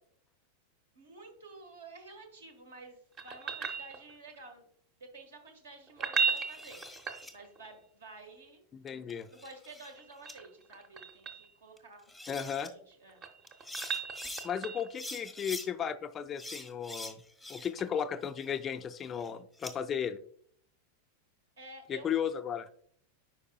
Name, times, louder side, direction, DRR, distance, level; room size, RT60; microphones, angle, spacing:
voice 1, 0.9-4.7 5.0-6.8 7.3-8.6 9.3-12.1 12.4-13.2 21.6-22.2, right 3 dB, 65° right, 5 dB, 1.4 m, -51 dB
sound 1, 3.2-4.4 5.9-7.7 9.8-11.5 12.9-15.0 17.8-17.9, right 5 dB, 30° right, 0.7 m, -36 dB
sound 2, 6.3-7.3 8.9-9.9 10.3-10.4 11.8-11.9 12.1-12.7 13.5-14.5 14.9-15.7 16.4-17.9 18.2-19.7, left 1 dB, ahead, 0.8 m, -45 dB
voice 2, 8.7-9.3 12.3-12.7 14.4-17.2 17.5-20.2 21.9-22.7, left 8 dB, 25° left, 9 dB, 0.3 m, -35 dB
9.7 x 4.9 x 2.2 m, 0.63 s
figure-of-eight pair, 90°, 0 cm